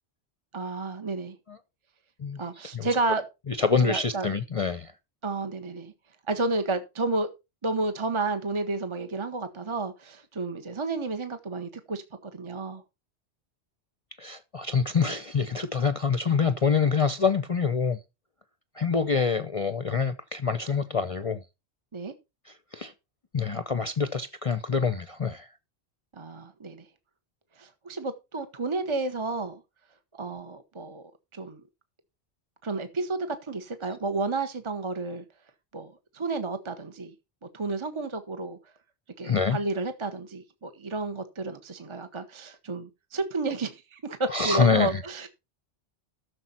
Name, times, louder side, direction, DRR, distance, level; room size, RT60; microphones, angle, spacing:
voice 1, 0.5-1.3 2.4-3.2 3.8-4.3 5.2-5.9 6.3-7.3 7.6-12.8 21.9-22.1 26.2-26.9 27.6-29.6 30.2-31.0 31.3-31.6 32.6-35.2 35.7-37.1 37.5-38.6 39.2-45.3, right 3 dB, 25° right, 1.1 m, -31 dB
voice 2, 2.2-2.9 3.5-4.9 14.2-18.0 18.8-21.4 22.5-22.9 23.3-25.5 39.2-39.6 44.3-45.0, left 5 dB, 35° left, 0.7 m, -26 dB
13.5 x 6.8 x 4.3 m
omnidirectional pair, 1.1 m